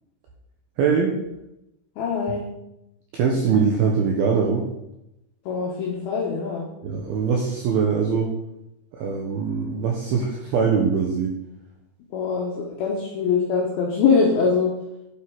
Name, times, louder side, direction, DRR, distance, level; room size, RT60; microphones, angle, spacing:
voice 1, 0.8-1.2 3.1-4.7 6.8-8.3 8.9-11.3, right 6 dB, 80° right, 0 dB, 2.2 m, -22 dB
voice 2, 2.0-2.5 5.5-6.7 12.1-14.7, left 5 dB, 75° left, -1 dB, 2.2 m, -23 dB
9.2 x 7.6 x 4.6 m, 0.87 s
omnidirectional pair, 5.7 m